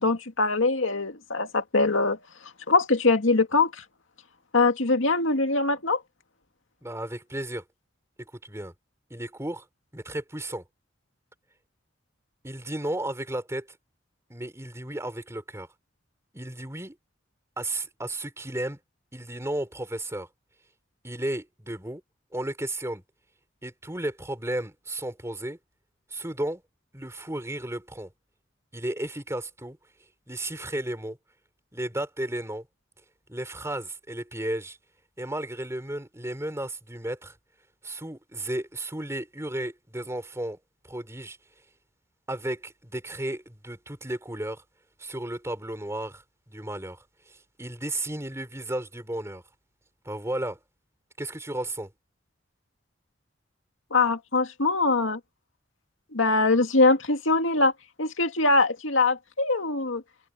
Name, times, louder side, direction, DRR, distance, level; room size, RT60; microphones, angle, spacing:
voice 1, 0.0-2.2 2.7-3.8 4.5-6.0 53.9-55.2 56.1-57.7 58.0-60.0, left 3 dB, 80° left, 2.3 m, -23 dB
voice 2, 6.8-7.6 8.2-8.7 9.1-9.6 9.9-10.6 12.4-13.8 14.3-15.7 16.3-17.0 17.6-18.8 19.1-20.3 21.0-22.0 22.3-23.0 23.6-25.6 26.1-26.6 26.9-28.1 28.7-29.8 30.3-31.2 31.7-32.7 33.3-34.8 35.2-37.4 37.8-40.6 40.8-41.4 42.3-44.6 45.0-49.4 50.0-50.6 51.2-51.9, right 1 dB, 15° right, 4.1 m, -34 dB
head